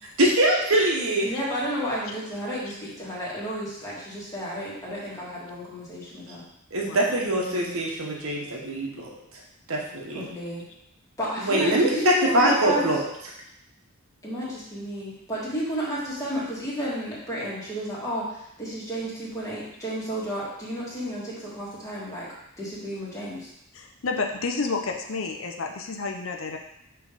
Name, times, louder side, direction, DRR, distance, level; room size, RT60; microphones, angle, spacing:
voice 1, 0.2-1.3 6.7-9.1 9.7-10.2 11.4-13.0, right 1 dB, 70° right, -1 dB, 1.3 m, -23 dB
voice 2, 1.2-6.4 10.1-10.6 11.2-12.8 14.2-22.3 22.6-23.5, equal, 15° left, -7 dB, 1.8 m, -32 dB
voice 3, 6.8-7.2 23.7-26.6, left 4 dB, 65° left, 3 dB, 0.6 m, -30 dB
6.0 x 3.3 x 4.9 m, 0.79 s
head